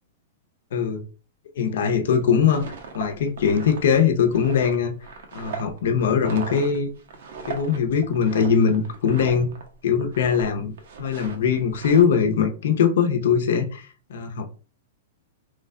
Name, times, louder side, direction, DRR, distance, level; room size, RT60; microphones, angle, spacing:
voice 1, 0.7-1.0 1.6-4.9 5.3-6.9 7.4-9.5 9.8-10.7 11.0-13.8 14.1-14.5, left 7 dB, 75° left, 0.6 m, -21 dB
sound 1, 2.2-9.7 10.0-10.5 10.8-12.0, right 5 dB, 70° right, 0.8 m, -38 dB
3.1 x 2.2 x 3.6 m
hypercardioid pair, 155°, 0 cm